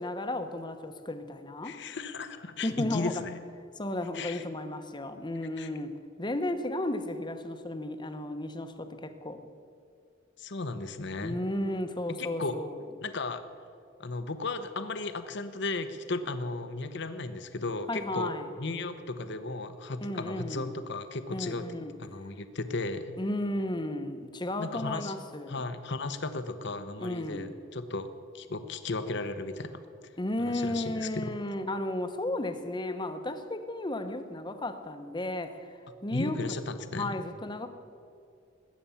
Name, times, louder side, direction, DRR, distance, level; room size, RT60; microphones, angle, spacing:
voice 1, 0.0-1.8 2.6-3.2 3.8-5.9 6.2-9.5 11.2-12.8 17.9-18.5 20.0-20.7 21.3-21.9 23.2-25.6 27.0-27.5 30.2-36.6 36.9-37.7, left 1 dB, 25° left, 8 dB, 1.0 m, -34 dB
voice 2, 1.6-3.4 4.1-4.4 5.6-5.7 10.4-11.5 12.2-12.5 13.0-13.4 14.0-21.7 22.0-23.2 24.6-25.1 25.5-28.1 28.3-29.8 30.4-31.2 36.1-37.1, left 3 dB, 60° left, 10 dB, 1.0 m, -35 dB
20.5 x 8.6 x 7.1 m, 2.4 s
head